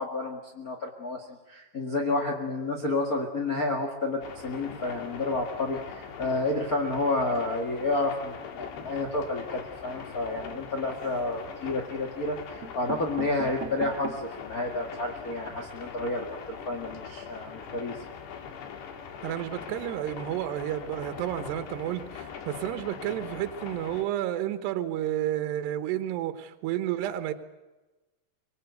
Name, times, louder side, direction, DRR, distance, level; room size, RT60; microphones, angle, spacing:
voice 1, 0.0-18.0, left 2 dB, 50° left, 1 dB, 1.0 m, -30 dB
sound 1, 4.2-24.1, left 7 dB, 75° left, 4.1 m, -42 dB
sound 2, 10.9-11.5 12.2-12.3 12.6-14.4 14.9-15.0 15.2-15.3 15.6-15.8, right 9 dB, 55° right, 2.1 m, -40 dB
voice 2, 19.2-27.3, right 12 dB, 75° right, 8 dB, 3.2 m, -31 dB
25.0 x 21.5 x 8.1 m, 1.1 s
omnidirectional pair, 5.1 m